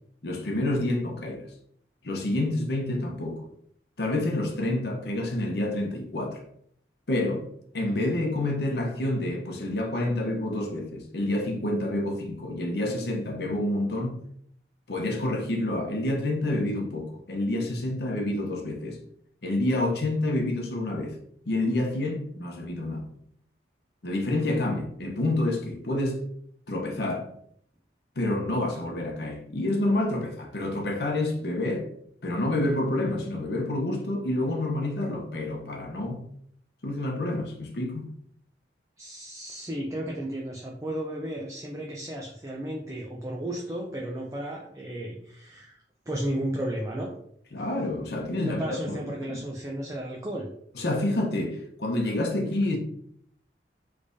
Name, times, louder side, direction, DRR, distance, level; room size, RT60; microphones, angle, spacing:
voice 1, 0.2-1.5 2.0-3.5 4.0-6.4 7.1-7.5 7.7-14.2 14.9-19.0 19.4-21.2 21.4-23.0 24.0-26.2 26.7-27.3 28.2-31.9 32.2-36.2 36.8-38.1 47.5-49.4 50.7-52.8, left 1 dB, 60° left, 0.7 m, -28 dB
voice 2, 39.0-47.1 48.4-50.5, right 1 dB, 15° right, 0.4 m, -34 dB
3.4 x 3.3 x 2.6 m
head